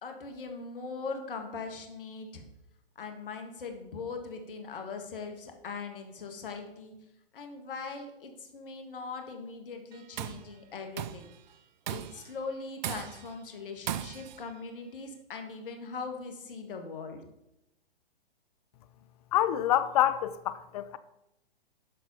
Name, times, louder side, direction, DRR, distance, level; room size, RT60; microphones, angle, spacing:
voice 1, 0.0-2.4 3.0-6.9 7.3-11.3 11.9-17.2, left 4 dB, 65° left, 1.8 m, -40 dB
Tools, 9.9-10.5 11.0-11.3 11.9-12.3 12.8-13.3 13.9-14.4, right 11 dB, 50° right, 0.5 m, -37 dB
voice 2, 19.3-21.0, left 12 dB, 40° left, 0.6 m, -27 dB
11.5 x 4.1 x 5.5 m
hypercardioid pair, 125°, 29 cm